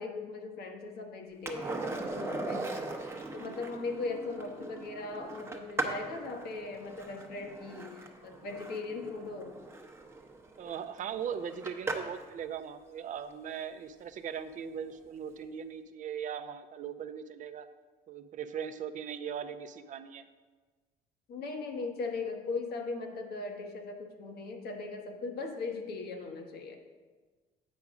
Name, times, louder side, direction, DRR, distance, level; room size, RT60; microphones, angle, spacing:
voice 1, 0.0-9.5 21.3-26.8, left 3 dB, 70° left, 3 dB, 1.2 m, -39 dB
Skateboard, 1.5-12.3 14.9-15.0, right 2 dB, 15° right, 0.8 m, -40 dB
voice 2, 10.6-17.7 18.1-20.2, right 8 dB, 50° right, 11 dB, 0.5 m, -39 dB
8.3 x 5.0 x 4.8 m, 1.4 s
cardioid pair, 110°, 17 cm